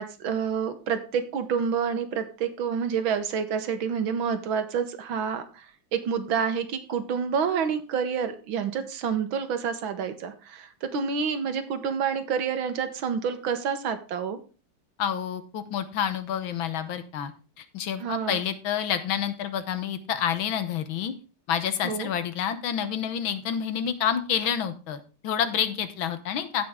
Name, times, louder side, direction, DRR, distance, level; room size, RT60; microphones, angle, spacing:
voice 1, 0.0-5.7 5.9-14.4 18.0-18.4 21.8-22.1, right 6 dB, 70° right, 9 dB, 1.8 m, -28 dB
voice 2, 15.0-17.3 17.6-21.1 21.5-26.7, left 8 dB, 70° left, 11 dB, 1.7 m, -28 dB
16.0 x 5.4 x 3.6 m, 0.34 s
omnidirectional pair, 2.3 m